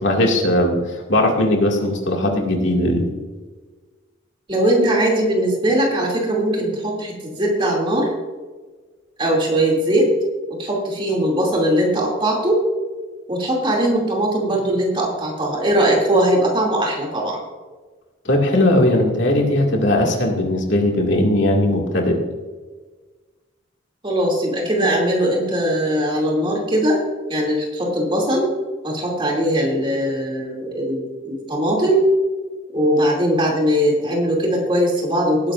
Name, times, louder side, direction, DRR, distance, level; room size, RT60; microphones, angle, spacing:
voice 1, 0.0-3.1 18.3-22.2, left 1 dB, 70° left, 0 dB, 2.2 m, -18 dB
voice 2, 4.5-8.1 9.2-10.1 10.6-12.6 13.3-17.4 24.0-27.0 27.3-28.5 28.8-32.1 32.7-35.5, right 1 dB, 25° right, -2 dB, 2.7 m, -20 dB
18.0 x 10.5 x 2.5 m, 1.3 s
head